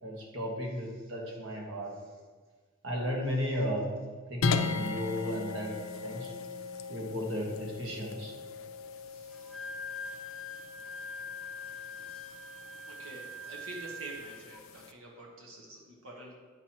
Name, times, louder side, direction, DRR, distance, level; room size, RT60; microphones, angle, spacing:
voice 1, 0.0-1.9 2.8-3.9 4.3-5.7 6.0-6.3 6.9-8.3, equal, 60° right, -2 dB, 1.7 m, -34 dB
sound 1, 4.4-14.9, left 4 dB, 80° left, 0.5 m, -38 dB
voice 2, 9.0-9.7 11.7-12.4 12.9-16.4, right 1 dB, 80° right, -2 dB, 1.2 m, -48 dB
Wind instrument woodwind instrument, 9.3-14.6, left 2 dB, ahead, 0.5 m, -43 dB
9.1 x 6.0 x 3.0 m, 1.4 s
head